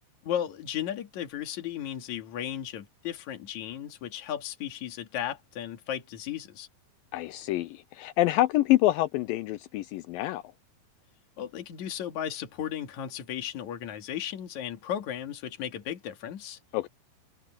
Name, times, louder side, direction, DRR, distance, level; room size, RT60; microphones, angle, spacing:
voice 1, 0.2-6.7 11.4-16.6, left 10 dB, 55° left, 3.2 m, -35 dB
voice 2, 7.1-10.4 16.7-16.9, left 16 dB, 80° left, 2.1 m, -26 dB
omnidirectional pair, 4.4 m